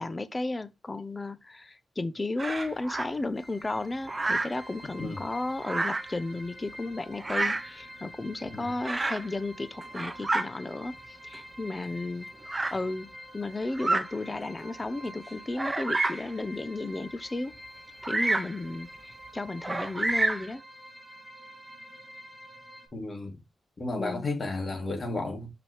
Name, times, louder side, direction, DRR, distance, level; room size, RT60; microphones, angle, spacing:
voice 1, 0.0-12.3 12.7-13.1 13.3-17.5 18.0-20.6 24.0-24.3, left 2 dB, 25° left, 0.9 m, -34 dB
Bird vocalization bird call bird song, 2.4-3.1 4.1-4.6 5.6-6.1 7.2-7.7 8.8-9.3 9.8-10.5 11.3-11.4 12.5-12.8 13.7-14.1 14.7-14.8 15.5-16.3 18.0-18.6 19.6-20.5, right 2 dB, 25° right, 1.1 m, -29 dB
sound 1, 3.4-22.9, equal, ahead, 2.6 m, -48 dB
voice 2, 22.9-23.4 23.8-25.5, left 2 dB, 40° left, 3.2 m, -33 dB
6.2 x 5.8 x 3.3 m
cardioid pair, 75°, 0 cm